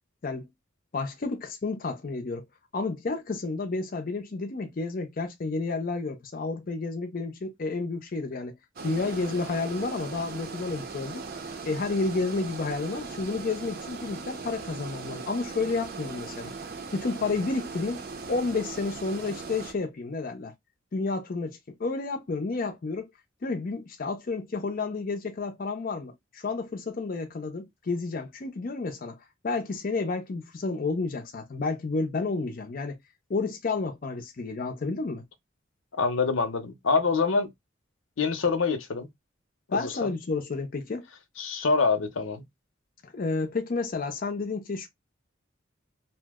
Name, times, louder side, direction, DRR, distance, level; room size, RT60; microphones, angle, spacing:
voice 1, 0.9-2.4 2.7-8.5 8.8-11.2 11.6-16.5 16.9-18.0 18.3-20.5 20.9-23.1 23.4-29.2 29.4-33.0 33.3-35.2 39.7-41.0 43.0-44.9, left 3 dB, 45° left, 0.5 m, -31 dB
sound 1, 8.8-19.7, right 4 dB, 50° right, 0.6 m, -39 dB
voice 2, 35.9-37.5 38.2-39.1 39.7-40.1 41.4-42.4, left 4 dB, 85° left, 0.6 m, -25 dB
2.7 x 2.0 x 3.4 m
head